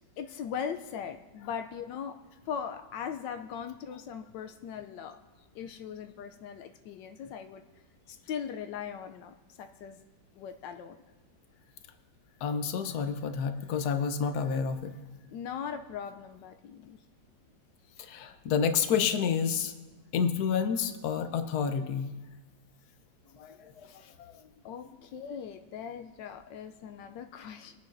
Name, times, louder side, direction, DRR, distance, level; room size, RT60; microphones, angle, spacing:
voice 1, 0.2-2.2 2.5-5.2 5.5-7.6 8.1-10.0 10.4-11.0 15.3-17.0 24.6-27.7, left 7 dB, 85° left, 7 dB, 1.3 m, -39 dB
voice 2, 3.6-4.0 12.4-14.9 18.0-19.7 20.1-22.1 23.3-24.1 24.8-24.9, left 6 dB, 65° left, 8 dB, 1.3 m, -30 dB
22.5 x 9.4 x 2.6 m, 1.2 s
omnidirectional pair, 1.9 m